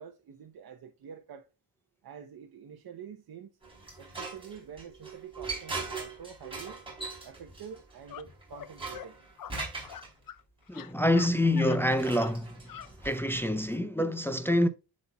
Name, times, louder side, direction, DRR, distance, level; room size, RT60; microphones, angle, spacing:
voice 1, 0.0-1.5 2.0-3.5 4.0-6.8 7.2-9.2, right 7 dB, 70° right, 0.8 m, -47 dB
sound 1, 3.6-10.1 11.4-13.7, right 3 dB, 15° right, 3.8 m, -41 dB
sound 2, 8.1-8.2 8.5-8.7 8.9-9.1 9.4-10.4 10.7-11.3 11.5-11.8 12.2-12.3 12.7-12.9, left 10 dB, 60° left, 0.6 m, -43 dB
voice 2, 10.7-12.6 13.0-14.7, left 1 dB, 5° left, 0.4 m, -26 dB
11.0 x 4.2 x 2.2 m
wide cardioid pair, 170°, 39 cm